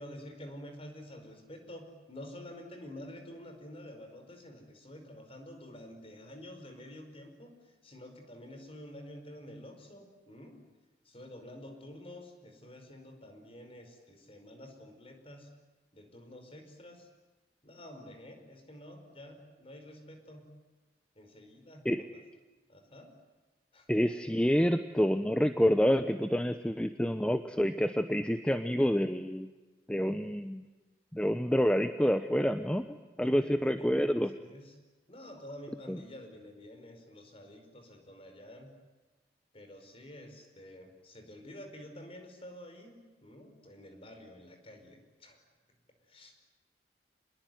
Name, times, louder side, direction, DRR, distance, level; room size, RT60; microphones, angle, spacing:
voice 1, 0.0-10.6 11.0-15.5 15.9-17.1 17.6-20.5 21.1-22.0 22.7-23.1 23.7-23.9 33.2-34.7 35.1-38.7 39.5-45.4 46.1-46.4, left 1 dB, 35° left, 6 dB, 5.1 m, -49 dB
voice 2, 23.9-29.5 29.9-30.7 31.1-32.8 33.2-34.3 35.9-36.0, equal, 5° left, 9 dB, 0.8 m, -28 dB
27.0 x 21.5 x 9.4 m, 1.2 s
head